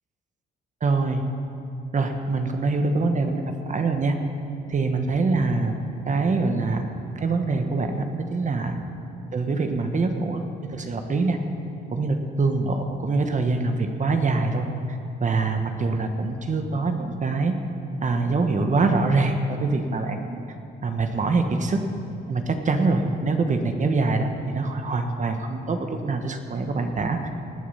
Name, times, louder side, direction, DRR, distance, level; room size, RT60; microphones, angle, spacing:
voice 1, 0.8-1.2 1.9-4.2 4.7-5.8 6.1-8.0 8.3-8.8 9.3-10.4 10.7-11.4 11.9-17.5 18.0-20.4 20.8-21.8 22.3-27.3, right 3 dB, 40° right, 5 dB, 1.2 m, -24 dB
19.0 x 8.5 x 5.7 m, 2.8 s
cardioid pair, 90°, 20 cm